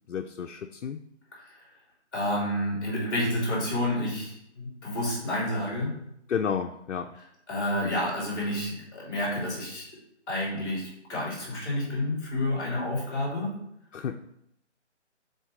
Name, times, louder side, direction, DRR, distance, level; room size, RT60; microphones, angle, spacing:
voice 1, 0.1-1.0 6.3-7.1 13.9-14.3, left 7 dB, 85° left, 5 dB, 0.5 m, -31 dB
voice 2, 1.3-1.7 2.1-6.0 7.5-9.9 10.3-13.6, left 1 dB, 15° left, -4 dB, 2.3 m, -30 dB
6.4 x 4.0 x 3.6 m, 0.77 s
figure-of-eight pair, 165°, 36 cm